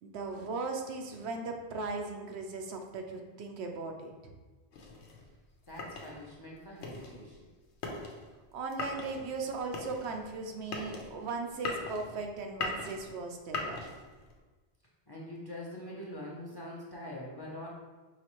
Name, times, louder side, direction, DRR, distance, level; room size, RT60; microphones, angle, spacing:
voice 1, 0.0-4.1 8.5-13.9, right 3 dB, 80° right, 3 dB, 0.8 m, -38 dB
sound 1, 4.7-14.4, left 3 dB, 85° left, 1.0 m, -41 dB
voice 2, 5.7-7.5 15.1-17.7, left 1 dB, 25° left, -4 dB, 0.6 m, -44 dB
4.9 x 3.2 x 3.0 m, 1.3 s
omnidirectional pair, 1.1 m